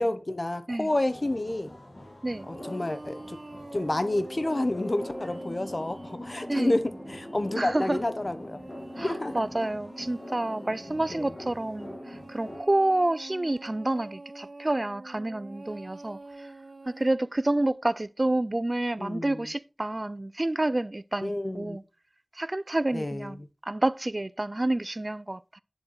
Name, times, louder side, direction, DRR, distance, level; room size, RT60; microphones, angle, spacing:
voice 1, 0.0-1.7 2.5-3.4 3.7-8.6 9.0-9.4 11.1-11.3 19.0-19.4 21.2-21.8 22.9-23.4, left 1 dB, 50° left, 0.9 m, -29 dB
sound 1, 1.1-12.6, left 1 dB, 85° left, 1.8 m, -43 dB
sound 2, 2.3-17.1, right 2 dB, 75° right, 0.8 m, -46 dB
voice 2, 7.6-8.0 9.0-16.5 16.9-21.8 22.3-25.6, right 1 dB, 45° right, 0.3 m, -29 dB
10.0 x 7.3 x 3.1 m
wide cardioid pair, 45°, 0 cm